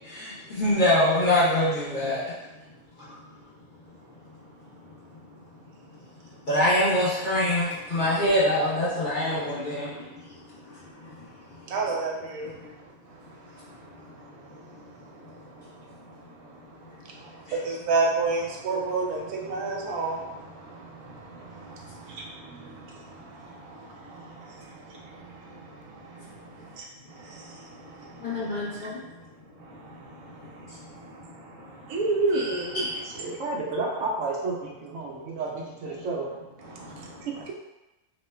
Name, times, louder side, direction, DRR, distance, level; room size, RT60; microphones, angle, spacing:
voice 1, 0.0-2.3 3.1-3.2 6.5-11.6 12.4-12.7 17.5-17.6 19.2-19.3 28.1-29.1 29.7-31.1 31.6-31.7 32.7-33.2 35.1-35.2 36.8-37.3, left 1 dB, 45° left, -9 dB, 0.7 m, -26 dB
voice 2, 11.7-12.5 17.6-20.3 22.2-22.3 31.9-32.7, right 3 dB, 90° right, -1 dB, 1.1 m, -26 dB
voice 3, 33.2-36.3, right 3 dB, 65° right, -3 dB, 0.8 m, -31 dB
3.0 x 2.2 x 3.2 m, 1.0 s
omnidirectional pair, 1.5 m